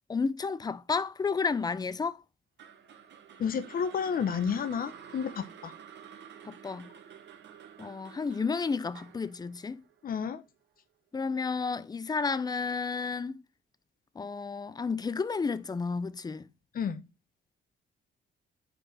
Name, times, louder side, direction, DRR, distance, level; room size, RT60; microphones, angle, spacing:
voice 1, 0.1-2.2 6.5-6.9 7.8-9.8 11.1-13.4 14.2-16.5, left 4 dB, 20° left, 0.5 m, -31 dB
sound 1, 2.6-10.8, right 8 dB, 60° right, 1.1 m, -50 dB
voice 2, 3.4-5.7 10.0-10.4 16.7-17.0, left 7 dB, 45° left, 0.8 m, -31 dB
5.4 x 4.7 x 4.0 m
cardioid pair, 90°, 20 cm